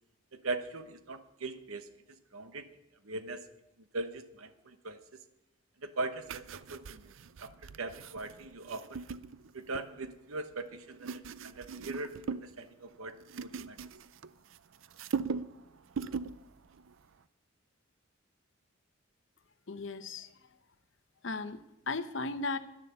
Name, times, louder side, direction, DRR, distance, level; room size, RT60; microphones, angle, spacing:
voice 1, 0.3-2.7 3.0-3.5 3.9-5.3 5.8-7.1 7.4-9.0 9.5-13.8, right 3 dB, 90° right, 9 dB, 1.1 m, -40 dB
sound 1, 6.3-10.1 10.7-12.6 12.9-14.6 14.8-15.6 15.9-16.4 16.7-16.9, right 5 dB, 70° right, 0.5 m, -40 dB
voice 2, 19.7-20.3 21.2-22.6, left 3 dB, 60° left, 11 dB, 0.8 m, -36 dB
11.5 x 11.0 x 6.7 m, 0.91 s
head